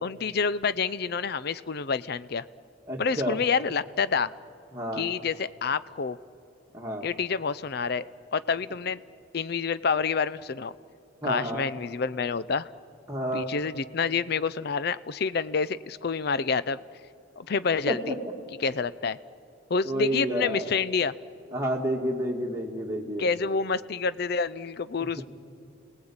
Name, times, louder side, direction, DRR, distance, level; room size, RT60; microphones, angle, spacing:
voice 1, 0.0-2.4 3.0-4.3 5.0-6.2 7.0-8.1 8.3-9.0 9.3-10.7 11.2-12.7 13.3-16.8 17.4-18.1 18.6-19.2 19.7-21.1 23.2-25.2, left 5 dB, 50° left, 17 dB, 0.5 m, -28 dB
voice 2, 2.9-3.4 4.7-5.1 6.7-7.1 11.2-11.7 13.1-13.5 17.9-18.2 19.8-20.8 21.5-23.3, equal, 15° right, -1 dB, 2.3 m, -30 dB
29.5 x 18.5 x 8.8 m, 2.5 s
head